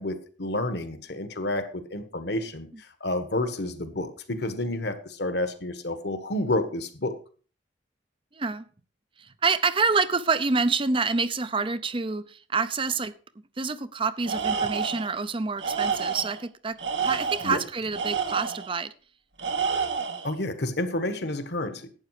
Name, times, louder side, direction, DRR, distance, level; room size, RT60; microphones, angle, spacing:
voice 1, 0.0-2.7 3.0-7.2 17.4-17.6 20.2-21.9, left 1 dB, 65° left, 10 dB, 1.5 m, -30 dB
voice 2, 9.2-13.1 13.6-18.9, right 4 dB, 30° right, 14 dB, 0.6 m, -27 dB
Tools, 14.2-15.1 15.6-16.4 16.8-18.7 19.4-20.3, right 6 dB, 80° right, 1.9 m, -29 dB
11.5 x 8.8 x 4.8 m, 0.39 s
head